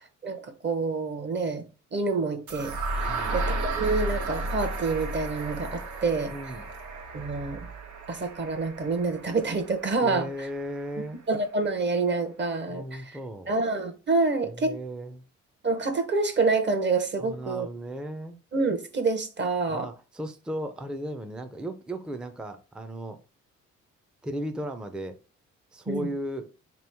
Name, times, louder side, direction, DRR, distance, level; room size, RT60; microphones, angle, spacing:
voice 1, 0.2-1.6 1.9-2.8 3.3-6.3 7.1-7.7 8.1-10.5 11.3-13.2 13.5-14.8 15.6-17.7 18.5-19.9 25.9-26.1, right 3 dB, 35° right, 0.8 m, -27 dB
sound 1, 2.5-10.4, right 2 dB, 70° right, 1.0 m, -33 dB
voice 2, 3.1-3.4 6.3-6.7 10.0-11.2 12.7-13.5 14.4-15.3 17.2-18.4 19.7-23.2 24.2-25.2 25.7-26.5, right 1 dB, 5° right, 0.4 m, -36 dB
3.6 x 3.0 x 3.4 m
cardioid pair, 90°, 30 cm